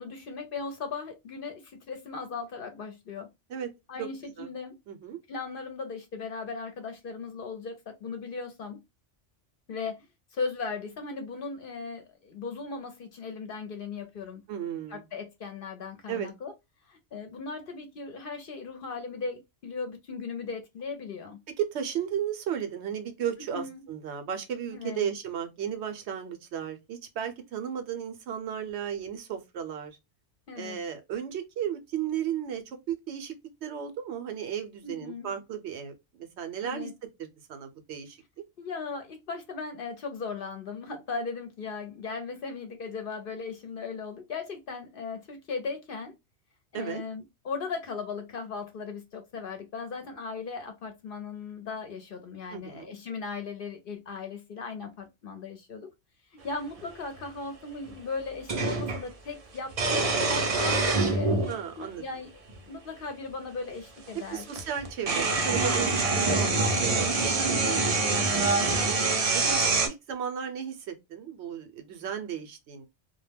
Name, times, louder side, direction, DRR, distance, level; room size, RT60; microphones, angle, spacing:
voice 1, 0.0-3.3 3.9-4.8 5.3-8.8 9.7-10.1 10.3-14.4 14.9-16.5 16.9-21.4 23.5-23.8 24.7-25.1 30.5-30.8 34.8-35.4 36.6-36.9 38.6-46.1 46.7-55.9 56.3-61.3 61.8-62.3 62.7-64.4 66.1-66.5 67.4-67.9 69.4-69.8, left 4 dB, 60° left, 0.7 m, -37 dB
voice 2, 4.9-5.2 14.5-15.0 16.1-16.3 21.6-30.0 30.6-33.3 33.6-36.9 37.2-38.2 46.7-47.0 52.5-52.9 61.5-62.0 64.3-69.0 69.3-72.9, right 9 dB, 70° right, 0.8 m, -35 dB
sound 1, 56.8-56.9 58.5-59.0 59.7-61.6 62.5-62.6 64.1-64.2 64.5-69.9, right 3 dB, 45° right, 0.4 m, -25 dB
2.2 x 2.1 x 3.3 m
omnidirectional pair, 1.2 m